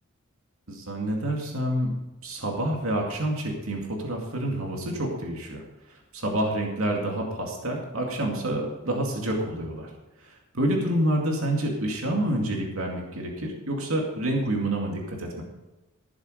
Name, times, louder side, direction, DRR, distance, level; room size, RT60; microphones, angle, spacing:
voice 1, 0.7-1.9 2.2-5.6 5.9-9.9 10.2-15.4, right 1 dB, 90° right, 0 dB, 2.3 m, -28 dB
15.5 x 7.3 x 5.1 m, 1.1 s
head